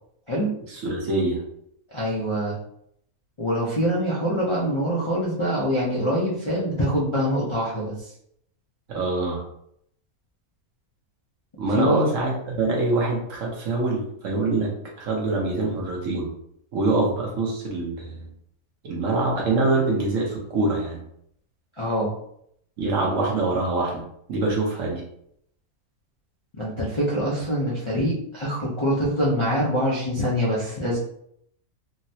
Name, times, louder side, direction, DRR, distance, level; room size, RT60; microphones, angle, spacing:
voice 1, 0.7-1.4 8.9-9.4 11.6-14.7 15.0-16.3 16.7-18.3 18.8-21.0 22.8-24.0 24.3-25.0, right 2 dB, 65° right, -1 dB, 1.1 m, -24 dB
voice 2, 1.9-2.6 3.4-8.1 11.6-12.0 21.8-22.1 26.6-31.0, equal, 45° left, -6 dB, 0.3 m, -24 dB
3.8 x 2.0 x 2.7 m, 0.71 s
omnidirectional pair, 1.6 m